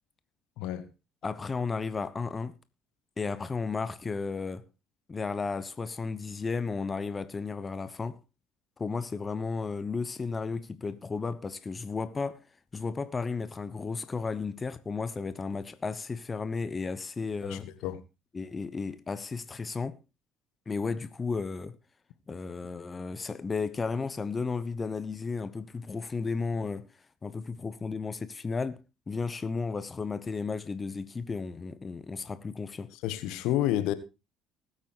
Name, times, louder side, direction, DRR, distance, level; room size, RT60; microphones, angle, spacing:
voice 1, 0.6-0.9 17.5-18.0 33.0-33.9, left 13 dB, 65° left, 1.2 m, -29 dB
voice 2, 1.2-2.5 3.2-4.7 5.1-8.2 8.8-12.5 12.7-17.7 18.3-20.0 20.7-21.7 22.3-26.9 27.2-28.8 29.1-32.9, left 4 dB, 30° left, 0.9 m, -34 dB
20.0 x 8.4 x 3.1 m
hypercardioid pair, 55°, 0 cm